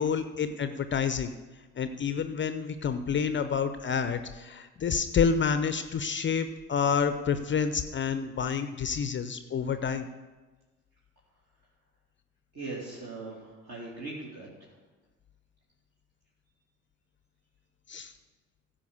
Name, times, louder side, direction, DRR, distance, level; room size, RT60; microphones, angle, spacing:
voice 1, 0.0-1.3 1.8-10.1 17.9-18.1, left 6 dB, 30° left, 10 dB, 0.6 m, -28 dB
voice 2, 12.5-14.7, right 3 dB, 40° right, -6 dB, 2.8 m, -40 dB
15.0 x 5.1 x 7.0 m, 1.3 s
figure-of-eight pair, 50°, 38 cm